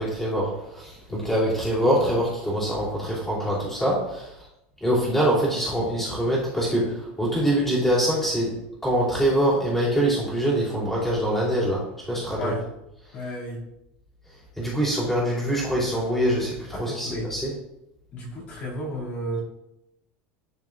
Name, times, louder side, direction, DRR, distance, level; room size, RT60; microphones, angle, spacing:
voice 1, 0.0-4.3 4.8-8.6 8.8-12.5 14.6-17.5, right 1 dB, 5° left, -8 dB, 3.0 m, -24 dB
voice 2, 13.1-13.6 16.7-17.3 18.1-19.4, equal, 35° left, -5 dB, 2.6 m, -33 dB
12.0 x 4.8 x 2.6 m, 0.86 s
supercardioid pair, 160°, 5 cm